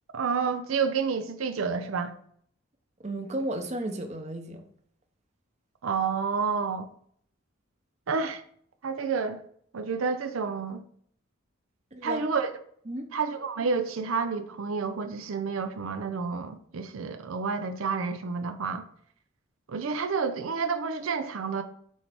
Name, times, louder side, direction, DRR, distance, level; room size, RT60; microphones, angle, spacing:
voice 1, 0.1-2.1 5.8-6.9 8.1-8.4 8.8-9.4 9.7-10.8 12.0-12.5 13.1-18.8 19.7-21.6, right 5 dB, 80° right, 0.5 m, -29 dB
voice 2, 3.0-4.6 11.9-12.2 12.9-13.1, right 1 dB, 35° right, 0.8 m, -33 dB
6.4 x 3.3 x 5.9 m
head